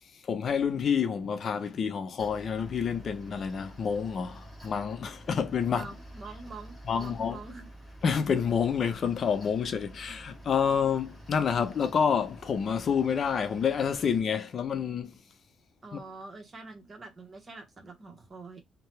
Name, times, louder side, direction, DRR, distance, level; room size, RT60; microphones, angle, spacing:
voice 1, 0.2-5.9 6.9-7.4 8.0-15.1 15.9-16.0, left 7 dB, 55° left, 0.5 m, -28 dB
Mechanical fan, 2.2-14.2, right 1 dB, 10° right, 1.3 m, -49 dB
voice 2, 5.7-7.7 15.8-18.6, right 3 dB, 35° right, 1.0 m, -45 dB
2.7 x 2.2 x 3.2 m
cardioid pair, 90°, 0 cm